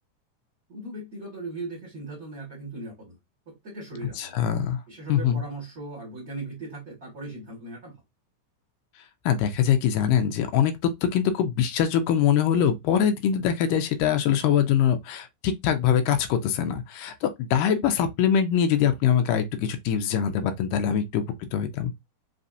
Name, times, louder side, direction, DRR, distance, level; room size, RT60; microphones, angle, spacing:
voice 1, 0.7-3.2 3.5-4.4 4.9-7.9, right 2 dB, 30° right, 2.2 m, -38 dB
voice 2, 4.2-4.8 5.1-5.4 9.3-21.3 21.5-21.9, left 8 dB, 90° left, 2.3 m, -23 dB
5.5 x 3.4 x 2.6 m
omnidirectional pair, 3.7 m